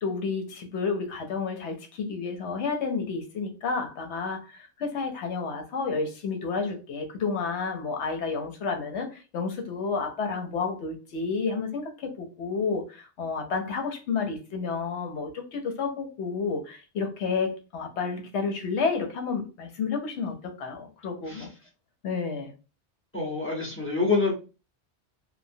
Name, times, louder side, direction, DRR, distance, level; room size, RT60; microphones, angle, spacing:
voice 1, 0.0-21.5 22.0-22.5, left 4 dB, 75° left, 1.0 m, -30 dB
voice 2, 23.1-24.3, left 4 dB, 15° left, 0.8 m, -26 dB
3.0 x 2.1 x 2.6 m
omnidirectional pair, 1.1 m